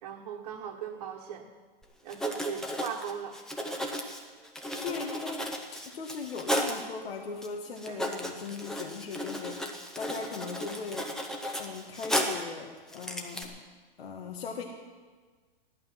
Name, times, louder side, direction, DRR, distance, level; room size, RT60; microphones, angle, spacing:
voice 1, 0.0-1.5 2.0-3.4 7.9-8.1, right 8 dB, 45° right, -1 dB, 1.4 m, -38 dB
Writing, 1.8-1.9 2.1-6.9 7.4-7.5 7.8-12.5 12.9-13.4, equal, ahead, 0.6 m, -34 dB
voice 2, 4.8-9.7 10.0-11.1 11.6-13.6 14.0-14.6, left 5 dB, 85° left, 1 dB, 1.9 m, -39 dB
15.5 x 11.5 x 5.9 m, 1.4 s
hypercardioid pair, 165°, 29 cm